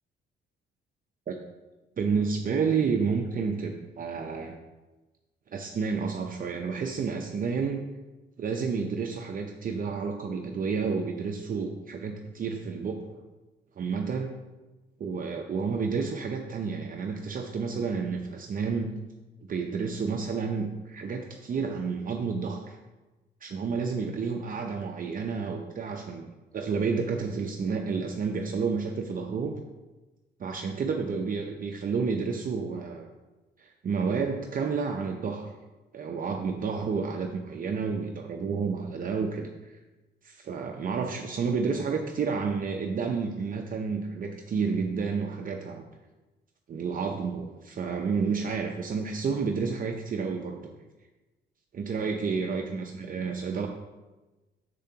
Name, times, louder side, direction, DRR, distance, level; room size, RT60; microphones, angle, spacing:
voice 1, 2.0-4.6 5.5-7.8 8.4-13.0 13.8-14.3 15.0-18.9 19.5-22.8 23.4-26.3 26.5-29.6 30.4-33.1 33.6-35.5 35.9-39.8 40.2-45.8 46.7-50.8 51.7-53.7, right 5 dB, 45° right, 2 dB, 0.6 m, -30 dB
6.9 x 6.8 x 2.8 m, 1.2 s
cardioid pair, 90°, 20 cm